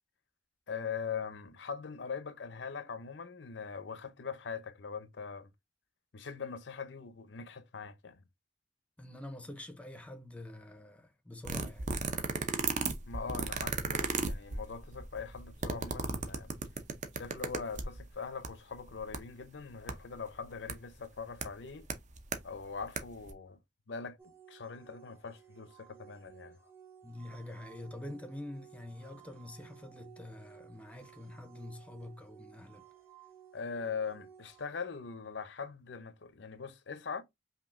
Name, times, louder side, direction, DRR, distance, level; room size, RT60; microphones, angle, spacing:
voice 1, 0.7-5.5 6.1-8.2 13.1-16.5 17.1-21.9 22.4-23.6 23.9-26.6 33.5-37.2, left 5 dB, 80° left, 0.6 m, -42 dB
voice 2, 9.0-11.9 27.0-32.8, left 1 dB, 5° left, 0.6 m, -46 dB
sound 1, 11.5-18.0 18.4-18.5 18.8-19.2 19.9-20.0 20.7-20.8 21.4-21.5 21.9-22.4 22.8-23.0 23.2-23.3, right 4 dB, 40° right, 0.7 m, -34 dB
sound 2, 24.2-34.6, right 9 dB, 15° right, 0.9 m, -57 dB
5.3 x 2.7 x 2.5 m
head